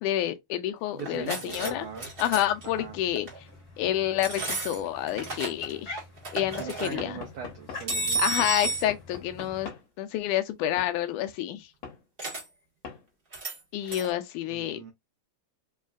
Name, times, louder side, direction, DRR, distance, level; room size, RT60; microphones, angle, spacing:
voice 1, 0.0-1.9 2.2-3.3 3.8-6.0 6.3-7.2 8.2-9.7 10.0-11.7 13.7-14.8, left 12 dB, 80° left, 2.0 m, -29 dB
voice 2, 0.9-2.1 2.7-2.9 6.6-8.2 14.5-14.9, right 7 dB, 80° right, 1.5 m, -40 dB
sound 1, 1.0-1.7 2.0-2.6 3.1-3.4 4.2-5.7 6.0-6.9 7.9-8.8 12.2-12.4 13.3-13.6 13.8-14.1, right 2 dB, 50° right, 0.6 m, -32 dB
sound 2, 1.5-9.7, left 2 dB, 40° left, 1.7 m, -46 dB
Knock / Wood, 7.0-9.9 10.8-11.0 11.8-12.0 12.8-13.0, left 5 dB, 60° left, 2.3 m, -42 dB
5.2 x 2.4 x 2.3 m
omnidirectional pair, 3.7 m